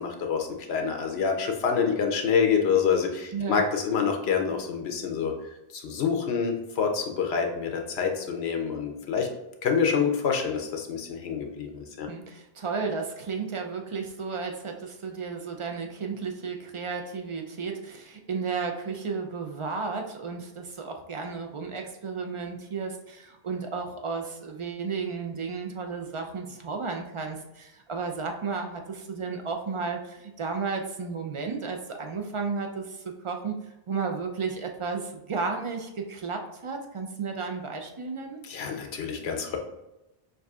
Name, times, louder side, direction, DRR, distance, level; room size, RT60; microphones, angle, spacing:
voice 1, 0.0-5.3 5.7-9.3 9.6-12.1 38.4-39.6, left 6 dB, 80° left, 3 dB, 0.9 m, -27 dB
voice 2, 3.3-3.6 12.1-33.6 33.9-38.4, right 5 dB, 50° right, 3 dB, 0.4 m, -33 dB
6.2 x 2.6 x 2.3 m, 0.93 s
omnidirectional pair, 1.1 m